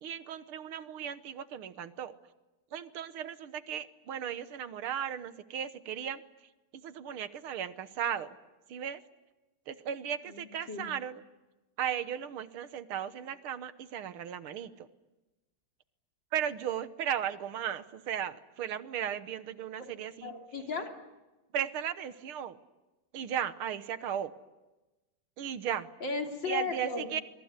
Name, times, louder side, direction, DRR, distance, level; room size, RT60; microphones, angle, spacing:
voice 1, 0.0-2.1 2.7-6.2 6.7-8.4 8.7-9.0 9.7-11.2 11.8-14.9 16.3-20.3 21.5-22.6 23.1-24.3 25.4-25.9 26.4-27.2, right 9 dB, 80° right, 12 dB, 2.0 m, -36 dB
voice 2, 10.3-10.9 20.2-21.0 26.0-27.1, left 4 dB, 55° left, 3 dB, 3.7 m, -35 dB
25.5 x 22.5 x 9.6 m, 1.1 s
omnidirectional pair, 2.4 m